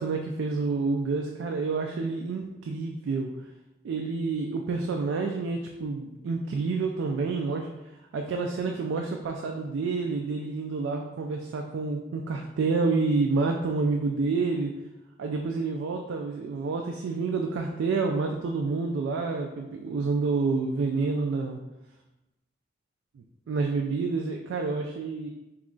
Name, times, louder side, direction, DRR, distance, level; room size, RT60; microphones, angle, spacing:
voice 1, 0.0-3.3 3.8-7.7 8.1-14.7 15.2-21.6 23.2-25.3, right 4 dB, 90° right, 2 dB, 0.3 m, -28 dB
3.1 x 2.4 x 3.7 m, 0.99 s
head